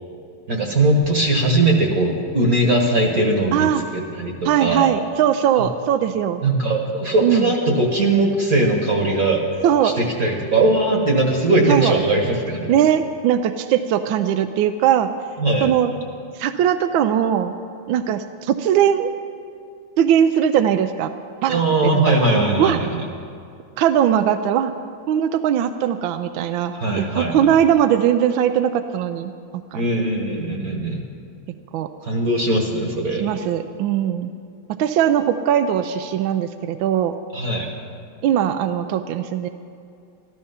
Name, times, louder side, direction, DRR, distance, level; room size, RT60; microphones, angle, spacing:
voice 1, 0.5-4.9 6.4-9.4 9.8-12.6 15.4-15.8 21.5-22.9 26.7-27.3 29.7-31.1 32.0-33.3 37.3-37.7, right 2 dB, 45° right, 1 dB, 1.6 m, -20 dB
voice 2, 3.5-3.8 4.4-6.4 7.2-7.5 9.6-9.9 11.7-11.9 12.7-15.1 15.6-15.9 16.3-17.5 17.9-19.1 20.0-21.1 21.4-21.6 21.9-22.0 22.6-22.8 23.8-24.7 25.1-29.8 31.7-31.9 33.2-34.3 34.8-37.2 38.2-39.5, right 9 dB, 75° right, 9 dB, 1.2 m, -20 dB
13.5 x 13.0 x 5.6 m, 2.4 s
omnidirectional pair, 2.4 m